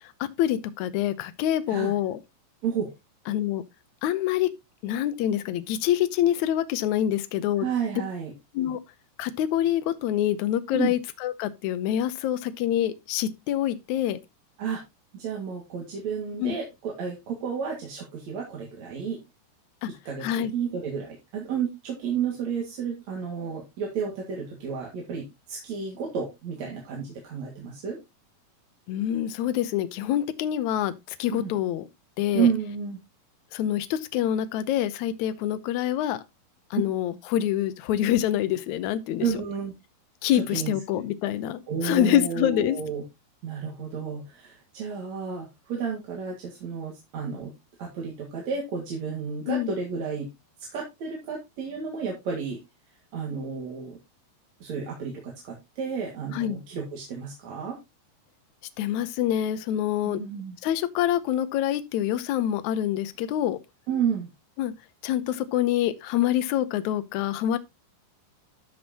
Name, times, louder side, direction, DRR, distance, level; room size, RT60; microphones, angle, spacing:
voice 1, 0.4-2.2 3.3-3.6 4.0-4.5 4.8-7.7 8.5-8.8 9.2-14.2 16.4-16.5 19.8-19.9 20.2-20.5 28.9-30.9 31.2-31.9 32.2-32.5 33.5-36.2 36.7-39.3 40.2-42.8 49.5-49.7 56.3-56.6 58.8-60.2 60.6-63.6 64.6-64.7 65.0-67.6, left 11 dB, 80° left, 1.7 m, -26 dB
voice 2, 7.6-8.3 10.7-10.9 14.6-14.8 15.1-19.2 20.0-28.0 31.3-31.5 32.3-33.0 36.7-36.9 39.2-39.7 40.3-40.8 41.7-43.0 43.4-47.5 47.8-50.3 50.7-52.6 53.1-54.0 54.6-57.8 60.0-60.6 63.9-64.3, right 6 dB, 50° right, 2.9 m, -31 dB
13.0 x 6.2 x 2.9 m
omnidirectional pair, 4.5 m